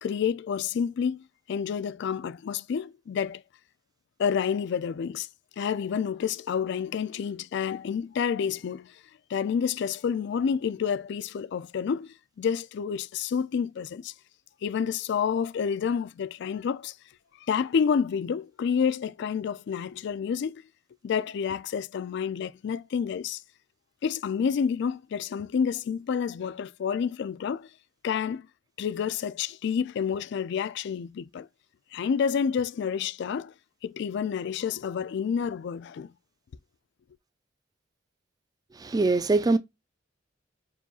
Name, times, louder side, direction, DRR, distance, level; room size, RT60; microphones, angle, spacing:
voice 1, 0.0-3.4 4.2-5.3 5.6-8.9 9.3-14.1 14.6-16.9 17.5-20.6 21.0-23.4 24.0-27.7 28.0-28.5 28.8-31.5 31.9-33.5 33.8-36.1, left 7 dB, 65° left, 0.3 m, -29 dB
voice 2, 38.8-39.6, right 3 dB, 20° right, 0.4 m, -23 dB
4.7 x 4.1 x 2.3 m
head